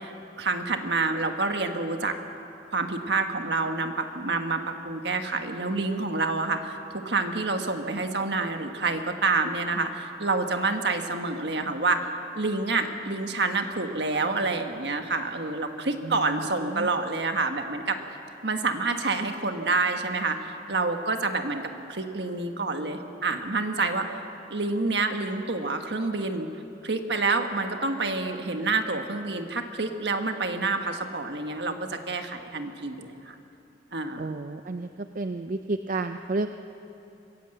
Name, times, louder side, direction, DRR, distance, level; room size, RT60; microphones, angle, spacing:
voice 1, 0.0-2.2 2.7-12.1 12.3-18.0 18.4-24.1 24.5-26.5 26.8-33.4 33.9-34.3, right 3 dB, 65° right, 6 dB, 1.5 m, -28 dB
voice 2, 34.2-34.9 35.1-36.5, right 3 dB, 50° right, 8 dB, 0.5 m, -31 dB
25.5 x 16.0 x 7.9 m, 2.8 s
head